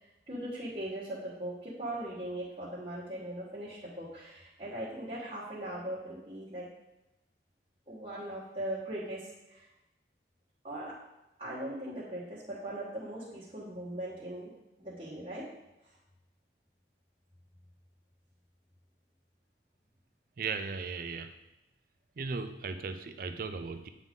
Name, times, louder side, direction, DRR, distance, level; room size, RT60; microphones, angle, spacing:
voice 1, 0.0-6.7 7.9-9.6 10.6-10.9 11.4-14.5 14.8-15.4, right 1 dB, 35° right, -10 dB, 1.4 m, -39 dB
voice 2, 20.4-21.3 22.2-23.9, right 4 dB, 50° right, 9 dB, 0.4 m, -37 dB
8.9 x 3.8 x 3.7 m, 0.96 s
head